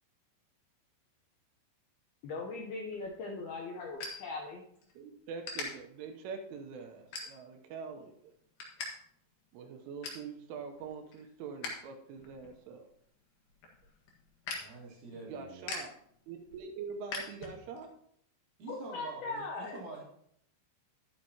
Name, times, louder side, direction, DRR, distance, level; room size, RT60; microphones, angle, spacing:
voice 1, 2.2-4.6 18.7-19.8, left 3 dB, 80° left, -1 dB, 2.3 m, -39 dB
sound 1, 2.9-4.9 5.4-5.7 6.2-6.5 7.1-7.7 8.1-8.9 9.2-9.3 9.6-10.3 10.7-11.8 12.1-17.9, left 4 dB, 60° left, 2.8 m, -43 dB
voice 2, 5.0-8.3 9.5-12.9 15.1-15.9 16.3-17.9, right 5 dB, 80° right, 5 dB, 3.4 m, -44 dB
voice 3, 14.5-15.7 18.6-20.0, right 2 dB, 50° right, -3 dB, 2.8 m, -46 dB
11.5 x 10.5 x 2.9 m, 0.69 s
omnidirectional pair, 5.7 m